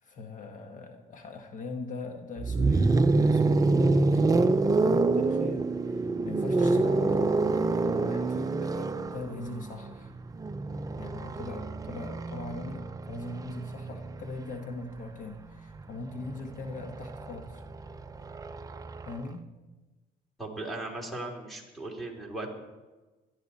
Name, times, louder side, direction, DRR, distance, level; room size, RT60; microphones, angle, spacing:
voice 1, 0.0-7.3 7.7-10.1 11.0-17.6 19.0-19.5, left 3 dB, 50° left, 4 dB, 1.5 m, -41 dB
sound 1, 2.4-14.3 15.6-19.2, right 3 dB, 20° right, 0.6 m, -27 dB
voice 2, 20.4-22.5, right 2 dB, ahead, 1 dB, 3.1 m, -37 dB
18.0 x 12.5 x 4.2 m, 1.2 s
cardioid pair, 110°, 17 cm